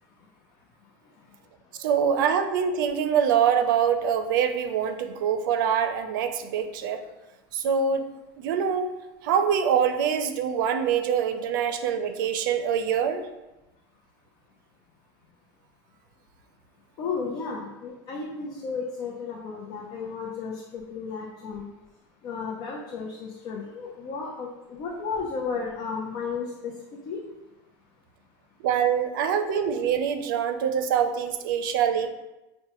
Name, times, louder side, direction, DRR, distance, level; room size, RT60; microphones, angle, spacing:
voice 1, 1.8-7.0 7.5-8.0 8.4-8.9 9.2-13.2 28.6-32.1, right 7 dB, 90° right, 8 dB, 0.5 m, -24 dB
voice 2, 17.0-21.6 22.2-26.5 27.1-27.2, left 5 dB, 40° left, -2 dB, 0.5 m, -33 dB
5.6 x 2.2 x 2.9 m, 1.0 s
supercardioid pair, 165°, 11 cm